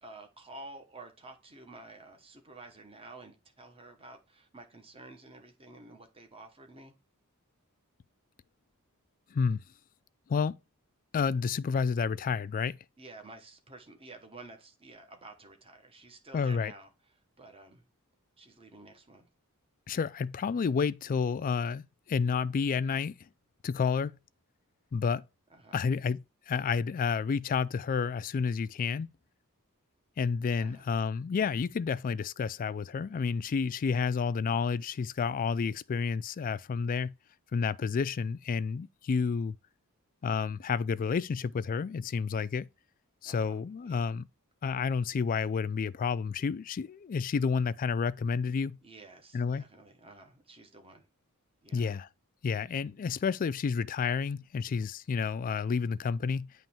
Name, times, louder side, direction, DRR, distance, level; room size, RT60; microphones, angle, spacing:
voice 1, 0.0-6.9 13.0-16.9 17.4-17.8 18.4-19.3 25.5-25.9 30.6-30.9 43.2-44.2 48.8-51.1 51.6-51.9, right 2 dB, 25° right, 1.1 m, -51 dB
voice 2, 9.3-9.6 10.3-10.6 11.1-12.8 16.3-16.7 19.9-23.2 23.6-24.2 24.9-25.2 25.7-29.1 30.2-37.1 37.5-39.6 40.2-42.7 43.2-44.3 44.6-48.8 49.3-49.7 51.7-52.1 52.4-56.5, left 5 dB, 40° left, 0.3 m, -30 dB
9.0 x 3.1 x 4.3 m
head